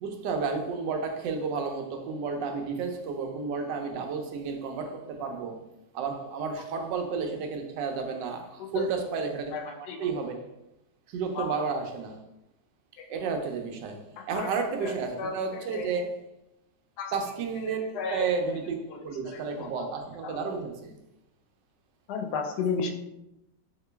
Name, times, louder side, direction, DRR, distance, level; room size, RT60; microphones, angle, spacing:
voice 1, 0.0-5.6 5.9-9.7 10.0-10.4 11.1-12.2 13.1-14.0 14.3-16.1 17.1-17.8 18.1-20.9, right 5 dB, 85° right, 4 dB, 1.3 m, -32 dB
voice 2, 9.5-10.1 11.3-11.6 13.0-13.2 14.2-14.5 14.8-15.9 17.0-17.1 17.9-18.3 18.9-19.0 19.2-19.7 20.2-20.4 22.1-22.9, left 5 dB, 75° left, 2 dB, 1.0 m, -34 dB
3.7 x 2.9 x 3.3 m, 0.90 s
omnidirectional pair, 1.9 m